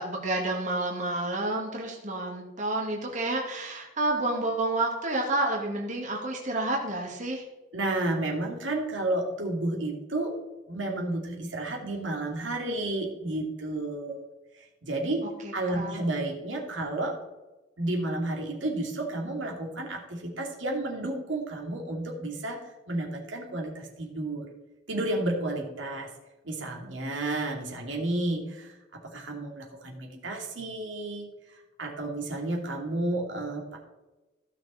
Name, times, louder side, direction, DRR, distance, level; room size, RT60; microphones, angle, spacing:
voice 1, 0.0-7.4 15.4-16.0, right 2 dB, 40° right, -1 dB, 2.1 m, -30 dB
voice 2, 7.7-10.3 10.7-14.3 14.6-15.2 15.5-17.2 17.8-22.6 22.9-24.5 24.9-26.1 26.4-31.3 31.8-33.8, right 2 dB, 85° right, 0 dB, 2.4 m, -31 dB
15.5 x 6.2 x 4.3 m, 1.1 s
head